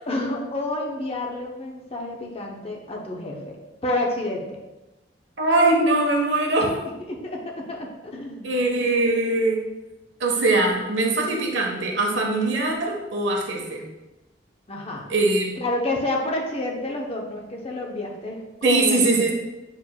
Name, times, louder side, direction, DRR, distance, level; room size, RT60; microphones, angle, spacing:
voice 1, 0.1-3.6 3.8-4.6 6.6-6.7 7.1-8.6 14.7-15.1 15.6-19.3, left 2 dB, 35° left, 0 dB, 1.0 m, -29 dB
voice 2, 5.4-6.7 8.4-9.7 10.2-13.8 15.1-15.5 18.6-19.3, right 2 dB, 75° right, 0 dB, 1.3 m, -21 dB
8.8 x 5.1 x 2.4 m, 1.1 s
head